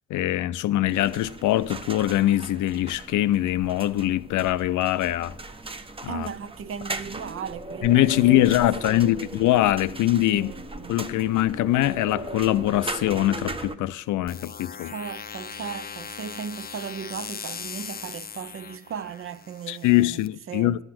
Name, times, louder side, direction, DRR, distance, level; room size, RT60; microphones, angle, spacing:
voice 1, 0.1-5.3 6.0-6.3 7.8-10.5 10.9-14.9 19.7-20.8, left 14 dB, 80° left, 0.5 m, -23 dB
sound 1, 0.9-13.8, right 2 dB, 20° right, 0.8 m, -38 dB
voice 2, 6.0-8.6 8.9-9.3 10.3-11.0 14.8-20.8, right 7 dB, 45° right, 0.6 m, -37 dB
sound 2, 14.3-20.3, left 7 dB, 30° left, 0.5 m, -39 dB
11.5 x 7.9 x 5.9 m
cardioid pair, 90°, 30 cm